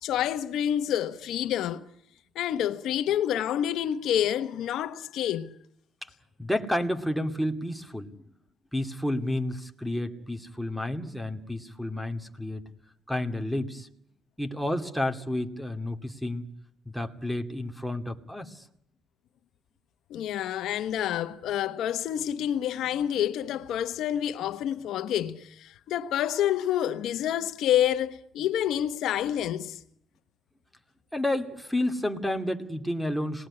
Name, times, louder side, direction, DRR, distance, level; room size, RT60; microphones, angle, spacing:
voice 1, 0.0-1.8 2.3-5.5 20.1-29.8, left 10 dB, 80° left, 1.1 m, -28 dB
voice 2, 6.4-8.1 8.7-12.7 13.1-13.9 14.4-16.4 16.9-18.7 31.1-33.5, left 1 dB, ahead, 2.5 m, -30 dB
27.0 x 20.0 x 9.9 m
cardioid pair, 90°, 0 cm